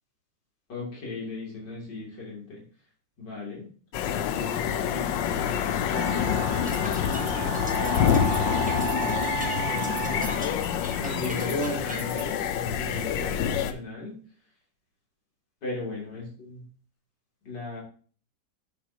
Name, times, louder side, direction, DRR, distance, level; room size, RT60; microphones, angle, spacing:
voice 1, 0.7-2.6 3.2-3.7 4.0-6.3 7.1-14.2 15.6-16.6 17.4-17.8, left 2 dB, 60° left, -3 dB, 3.6 m, -37 dB
sound 1, 3.9-13.7, left 9 dB, 75° left, 1.3 m, -27 dB
Wind instrument woodwind instrument, 5.3-5.4 5.9-10.6, right 9 dB, 70° right, 1.5 m, -34 dB
sound 2, 6.5-12.2, equal, 5° right, 0.7 m, -40 dB
10.0 x 7.0 x 2.8 m, 0.42 s
omnidirectional pair, 2.2 m